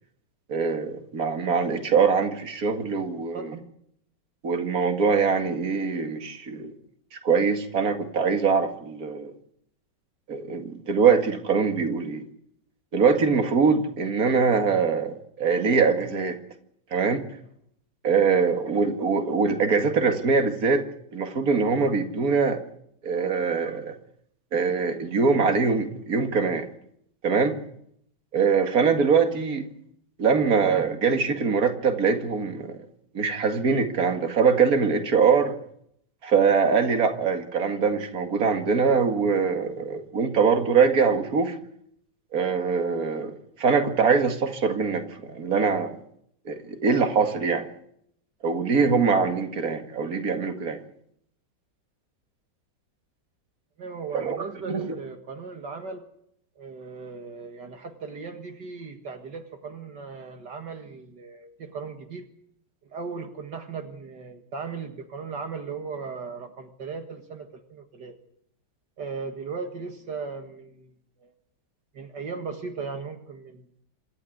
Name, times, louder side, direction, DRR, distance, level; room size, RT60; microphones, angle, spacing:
voice 1, 0.5-3.6 4.4-6.7 7.2-9.3 10.3-12.2 12.9-16.4 16.9-17.3 18.0-20.8 21.1-22.6 23.0-24.0 24.5-26.7 27.2-27.6 28.3-29.7 30.2-32.8 33.1-35.5 36.2-41.6 42.3-45.9 46.5-47.6 48.4-50.8 54.1-55.0, right 5 dB, 55° right, 6 dB, 2.5 m, -23 dB
voice 2, 53.8-56.1 56.6-62.3 62.8-68.1 69.0-70.9 71.2-71.3 71.9-73.7, right 5 dB, 70° right, 5 dB, 2.3 m, -37 dB
27.0 x 13.0 x 9.4 m, 0.71 s
omnidirectional pair, 1.9 m